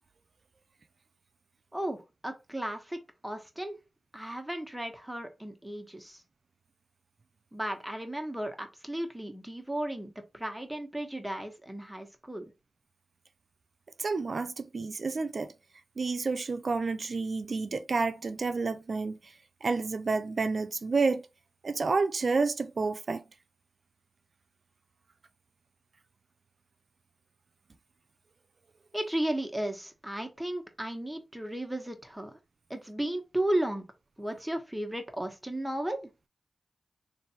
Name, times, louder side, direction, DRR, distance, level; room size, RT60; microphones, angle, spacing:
voice 1, 1.7-3.0 3.2-3.8 4.1-6.2 7.5-12.5 28.9-32.4 32.7-33.8 34.2-36.1, right 1 dB, 5° right, 1.2 m, -34 dB
voice 2, 14.0-15.5 16.0-19.3 19.6-21.3 21.6-23.2, right 4 dB, 60° right, 0.5 m, -30 dB
3.3 x 2.6 x 4.3 m
cardioid pair, 45°, 0 cm